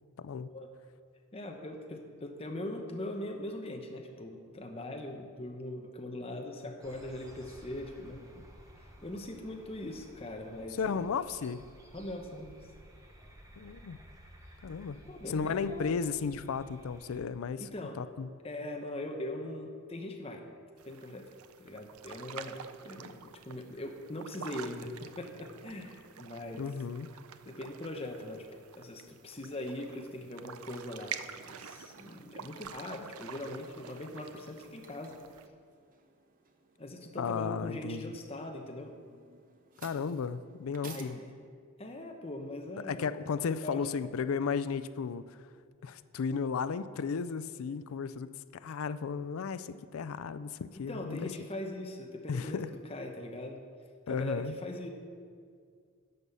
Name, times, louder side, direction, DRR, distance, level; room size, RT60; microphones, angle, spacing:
voice 1, 0.2-0.5 10.8-11.6 13.6-14.0 14.6-15.0 15.3-17.7 18.0-18.3 26.6-27.1 37.2-38.1 39.8-41.2 42.8-45.4 45.8-51.3 52.3-52.7 54.1-54.6, left 5 dB, 70° left, 13 dB, 0.4 m, -34 dB
voice 2, 1.3-8.4 9.0-11.0 11.9-12.6 15.0-15.9 17.6-18.0 18.4-20.4 20.8-21.3 21.6-26.6 27.4-28.4 28.7-35.2 36.8-38.9 40.8-41.4 41.8-43.1 43.6-43.8 50.9-52.6 52.9-53.6 54.1-54.9, left 1 dB, 25° left, 3 dB, 0.9 m, -41 dB
sound 1, 6.8-17.2, equal, 15° right, 1.0 m, -55 dB
sound 2, 20.8-35.5, right 8 dB, 80° right, 0.5 m, -48 dB
sound 3, 30.7-41.0, right 6 dB, 40° right, 0.7 m, -58 dB
11.0 x 5.5 x 6.8 m, 2.2 s
head